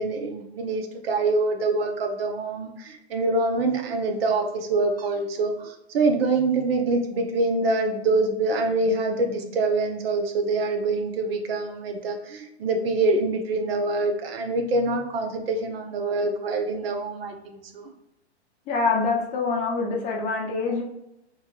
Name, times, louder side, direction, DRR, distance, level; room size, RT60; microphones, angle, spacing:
voice 1, 0.0-17.9, right 3 dB, 60° right, 3 dB, 0.8 m, -25 dB
voice 2, 18.7-20.8, left 4 dB, 25° left, 0 dB, 0.7 m, -25 dB
4.3 x 3.0 x 2.4 m, 0.85 s
hypercardioid pair, 120°, 33 cm